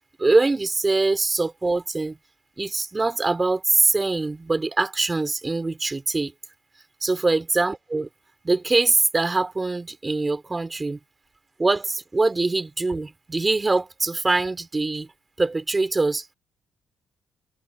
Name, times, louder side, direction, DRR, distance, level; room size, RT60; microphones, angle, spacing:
voice 1, 0.2-2.2 2.6-6.3 7.0-8.1 8.4-11.0 11.6-15.1 15.4-16.3, right 3 dB, 20° right, 4.4 m, -23 dB
cardioid pair, 90°, 0 cm